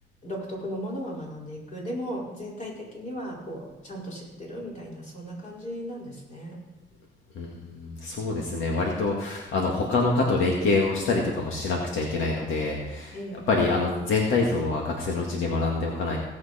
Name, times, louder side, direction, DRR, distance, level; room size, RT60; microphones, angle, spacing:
voice 1, 0.2-6.6 13.1-13.5, equal, 40° left, -4 dB, 4.8 m, -36 dB
voice 2, 7.4-16.2, left 3 dB, 75° left, -1 dB, 2.0 m, -26 dB
17.5 x 7.7 x 4.3 m, 0.99 s
cardioid pair, 90°, 20 cm